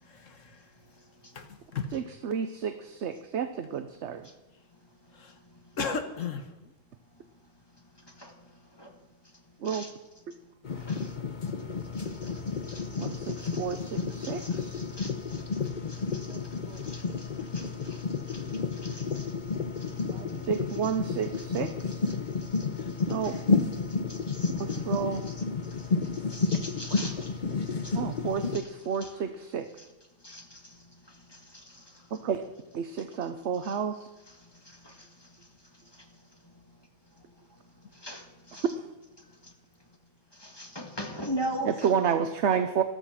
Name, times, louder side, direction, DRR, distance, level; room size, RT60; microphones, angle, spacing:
voice 1, 0.1-0.6 1.3-2.0 5.1-5.4 5.8-6.7 26.2-26.3 28.2-28.3 29.1-29.3, left 5 dB, 60° left, 8 dB, 1.5 m, -36 dB
voice 2, 1.9-4.2 9.6-9.9 13.0-14.8 16.3-16.4 16.7-16.8 20.1-22.0 23.1-23.4 24.6-25.2 27.9-29.7 32.1-32.4 32.7-34.1 41.7-42.8, right 7 dB, 55° right, 9 dB, 1.0 m, -31 dB
sound 1, 10.6-28.6, left 4 dB, 35° left, 0.9 m, -31 dB
voice 3, 10.7-11.1 11.9-16.4 16.7-17.3 17.5-18.4 18.7-19.3 19.8-20.1 20.7-21.0 21.3-22.8 23.2-23.4 23.7-23.8 24.1-25.4 25.8-25.9 26.3-27.4 27.7-28.0 28.4-28.7 29.0-29.1 29.8-29.9 30.2-30.6 31.3-31.8 33.6-33.8 34.3-34.4 34.8-35.1 38.0-38.7 40.4-41.9, equal, 15° left, 3 dB, 1.7 m, -42 dB
14.0 x 13.0 x 5.8 m, 1.1 s
omnidirectional pair, 1.6 m